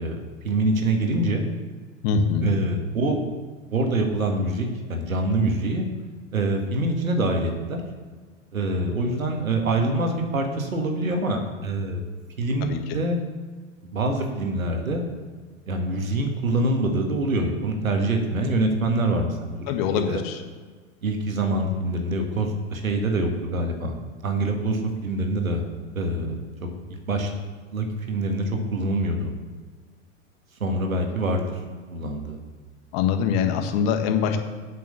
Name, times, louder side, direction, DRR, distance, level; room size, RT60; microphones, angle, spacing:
voice 1, 0.0-1.4 2.4-3.2 3.7-5.9 6.3-7.8 8.5-12.0 12.4-13.2 13.9-15.0 15.7-20.2 21.0-23.9 24.2-25.6 25.9-26.7 27.1-27.3 27.7-29.3 30.6-31.5 31.9-32.4, right 2 dB, 80° right, 3 dB, 2.0 m, -25 dB
voice 2, 2.0-2.5 12.6-12.8 19.7-20.4 32.9-34.4, left 7 dB, 45° left, 6 dB, 1.5 m, -23 dB
8.6 x 6.8 x 6.7 m, 1.5 s
figure-of-eight pair, 90°, 40 cm